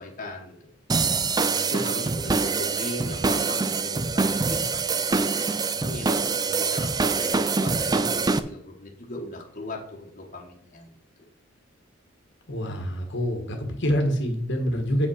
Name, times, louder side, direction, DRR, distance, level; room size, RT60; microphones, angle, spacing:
voice 1, 0.0-6.1 6.4-10.9, left 2 dB, 40° left, -1 dB, 1.5 m, -39 dB
sound 1, 0.9-8.4, right 4 dB, 20° right, 0.4 m, -25 dB
voice 2, 12.5-15.1, equal, 60° left, 4 dB, 1.5 m, -26 dB
7.6 x 5.5 x 5.7 m, 0.67 s
head